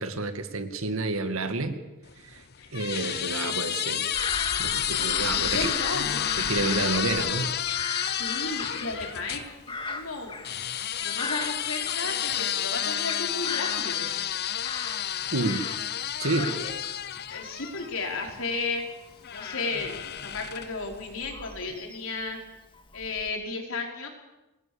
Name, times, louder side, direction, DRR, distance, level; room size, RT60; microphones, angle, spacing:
voice 1, 0.0-1.7 2.2-2.4 2.7-4.1 4.6-5.7 6.4-7.5 15.3-15.6 16.2-16.6, right 2 dB, 70° right, 8 dB, 2.2 m, -29 dB
sound 1, 2.1-9.5 10.4-18.4 19.2-20.8, left 11 dB, 50° left, 0.9 m, -30 dB
voice 2, 2.6-3.1 5.1-6.2 8.1-9.4 9.9-10.4 11.0-14.1 16.4-16.7 17.3-18.8 19.3-22.4 22.9-24.1, left 3 dB, 65° left, 2 dB, 5.2 m, -34 dB
Bird vocalization bird call bird song / Crow, 4.1-12.5 12.8-15.9 16.2-22.2 22.7-23.3, left 3 dB, 25° left, 2.1 m, -38 dB
27.0 x 20.5 x 7.2 m, 1.0 s
head